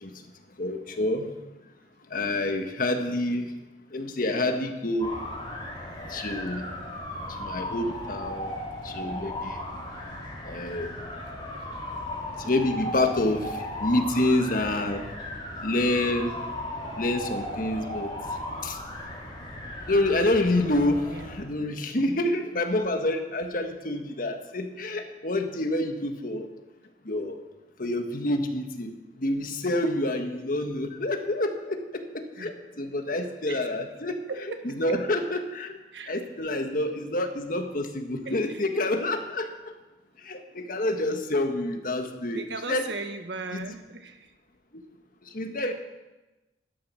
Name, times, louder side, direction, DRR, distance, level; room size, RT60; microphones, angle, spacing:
voice 1, 0.6-1.3 2.1-3.5 3.9-5.1 6.1-6.6 7.4-8.5 8.8-9.6 10.4-10.9 12.4-15.0 15.6-16.3 17.0-18.1 18.6-18.8 19.9-26.5 27.0-27.3 27.8-32.0 32.4-34.2 34.6-35.8 36.1-39.5 40.2-42.4 42.7-42.8 43.5-43.8 45.3-45.7, left 1 dB, 50° left, 5 dB, 1.5 m, -27 dB
sound 1, 5.0-21.4, left 1 dB, 30° left, 3.5 m, -36 dB
voice 2, 34.3-34.8 35.9-36.1 36.9-37.0 38.2-38.6 42.3-44.3, right 3 dB, 85° right, 6 dB, 1.5 m, -37 dB
12.5 x 12.5 x 6.3 m, 1.1 s
head